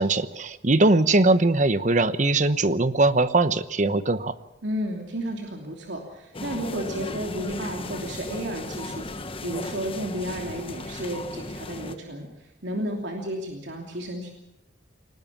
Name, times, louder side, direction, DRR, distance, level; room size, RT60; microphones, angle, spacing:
voice 1, 0.0-4.3, right 2 dB, 40° right, 13 dB, 1.0 m, -21 dB
voice 2, 4.6-14.3, equal, 75° right, 1 dB, 3.0 m, -32 dB
sound 1, 6.3-12.0, left 2 dB, 30° left, 1.2 m, -36 dB
23.0 x 19.5 x 7.2 m, 0.85 s
head